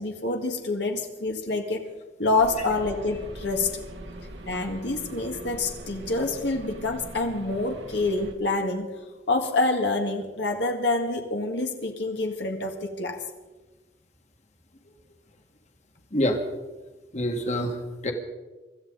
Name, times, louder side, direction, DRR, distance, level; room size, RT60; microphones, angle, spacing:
voice 1, 0.0-1.9 2.2-3.7 4.5-9.0 9.3-13.2, left 2 dB, 70° left, 3 dB, 1.7 m, -27 dB
sound 1, 2.4-8.3, right 1 dB, 75° right, 1.7 m, -42 dB
voice 2, 17.1-18.1, left 1 dB, 40° left, 3 dB, 1.9 m, -26 dB
24.5 x 13.5 x 4.0 m, 1.2 s
head